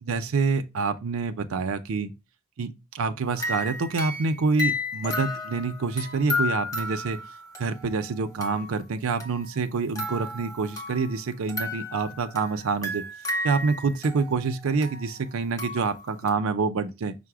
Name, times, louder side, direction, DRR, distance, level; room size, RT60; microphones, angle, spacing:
voice 1, 0.0-2.1 2.6-7.2 7.6-13.0 13.4-17.2, right 4 dB, 85° right, 0.5 m, -27 dB
sound 1, 3.3-8.8 9.2-11.2 11.5-16.3, left 2 dB, 15° left, 0.8 m, -33 dB
5.7 x 2.0 x 4.6 m
head